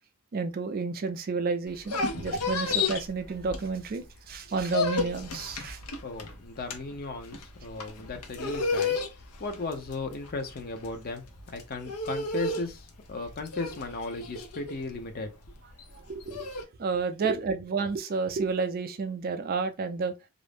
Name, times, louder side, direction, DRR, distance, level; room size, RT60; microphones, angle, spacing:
voice 1, 0.3-5.8 15.9-16.5 16.8-20.1, right 4 dB, 40° right, 0.3 m, -31 dB
sound 1, 1.7-4.0 4.3-16.6, left 3 dB, 90° left, 0.6 m, -32 dB
voice 2, 6.0-9.0 9.4-15.3, left 3 dB, 40° left, 0.5 m, -36 dB
2.5 x 2.0 x 3.3 m
head